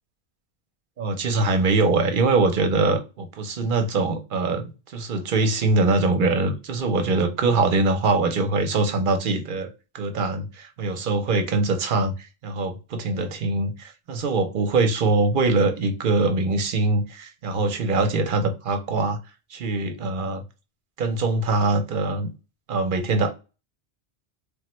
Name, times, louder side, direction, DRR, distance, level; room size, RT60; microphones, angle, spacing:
voice 1, 1.0-9.7 9.9-12.1 12.4-19.2 19.5-20.4 21.0-22.3 22.7-23.3, right 3 dB, 60° right, 0.7 m, -23 dB
3.4 x 2.1 x 3.0 m
omnidirectional pair, 1.1 m